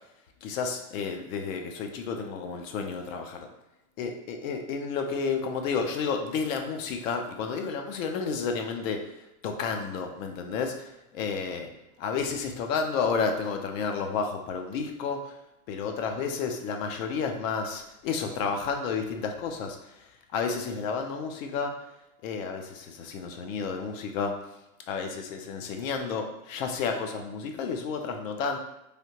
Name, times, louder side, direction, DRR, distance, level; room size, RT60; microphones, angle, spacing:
voice 1, 0.4-3.5 4.0-9.0 9.4-11.7 12.0-15.3 15.7-19.8 20.3-21.7 22.2-24.4 24.9-28.6, left 5 dB, 60° left, 4 dB, 0.6 m, -31 dB
3.3 x 2.4 x 2.8 m, 0.91 s
supercardioid pair, 145°, 44 cm